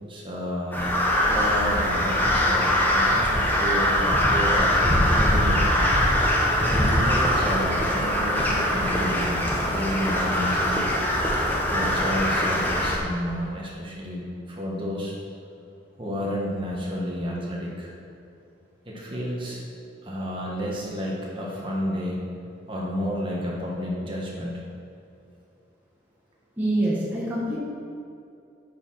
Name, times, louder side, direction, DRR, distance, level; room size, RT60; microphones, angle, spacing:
voice 1, 0.1-0.9 1.2-5.8 6.6-10.8 11.6-15.1 16.0-17.9 18.8-19.6 20.0-22.2 22.7-24.6, equal, 25° right, -4 dB, 1.5 m, -31 dB
Crow, 0.7-13.0, equal, 10° left, 1.0 m, -22 dB
voice 2, 26.6-27.6, right 1 dB, 10° right, -7 dB, 1.3 m, -25 dB
9.4 x 4.8 x 6.1 m, 2.6 s
head